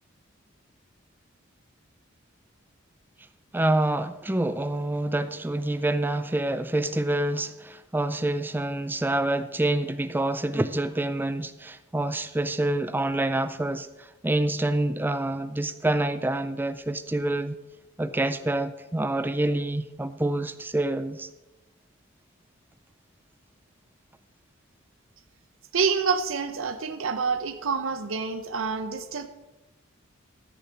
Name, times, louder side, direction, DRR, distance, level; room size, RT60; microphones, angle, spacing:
voice 1, 3.5-17.6 18.0-21.3, right 1 dB, 10° right, 13 dB, 0.4 m, -27 dB
voice 2, 25.7-29.3, right 5 dB, 75° right, 9 dB, 0.7 m, -27 dB
13.5 x 6.8 x 5.1 m, 1.0 s
head